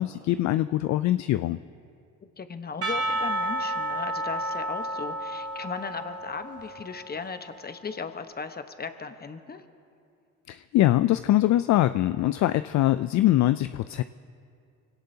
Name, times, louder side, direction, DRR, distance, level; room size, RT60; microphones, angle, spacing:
voice 1, 0.0-1.6 10.5-14.0, left 14 dB, 55° left, 12 dB, 0.4 m, -23 dB
voice 2, 2.4-9.6, left 5 dB, 25° left, 9 dB, 1.1 m, -37 dB
Percussion / Church bell, 2.8-7.4, right 1 dB, 45° right, 2.3 m, -31 dB
24.5 x 17.5 x 2.8 m, 2.4 s
supercardioid pair, 70°, 34 cm